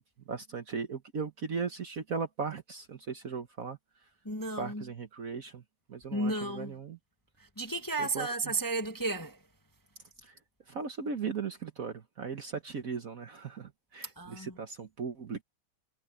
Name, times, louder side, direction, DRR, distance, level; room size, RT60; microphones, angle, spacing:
voice 1, 0.0-3.8 4.6-5.6 5.9-7.0 8.0-8.5 10.2-10.4 10.7-15.4, right 5 dB, 50° right, 1.4 m, -38 dB
voice 2, 4.2-4.8 6.1-6.7 7.6-9.4 14.2-14.5, right 2 dB, 10° left, 1.2 m, -33 dB
omnidirectional pair, 2.2 m